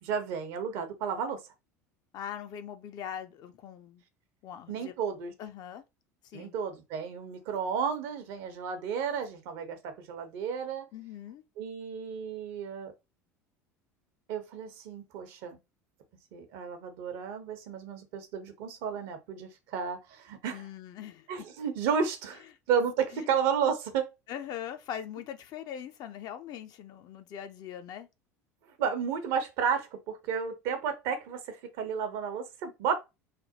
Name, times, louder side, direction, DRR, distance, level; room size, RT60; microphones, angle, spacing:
voice 1, 0.0-1.4 4.7-5.3 6.3-10.8 11.6-12.9 14.3-15.6 16.3-20.7 21.3-22.4 22.7-24.1 28.8-32.9, right 7 dB, 60° right, 0.8 m, -32 dB
voice 2, 2.1-4.0 4.4-4.9 5.4-5.8 6.3-6.5 10.9-11.4 20.5-21.3 23.1-23.3 24.3-28.1, left 9 dB, 50° left, 0.5 m, -41 dB
3.3 x 2.0 x 2.9 m
hypercardioid pair, 70°, 9 cm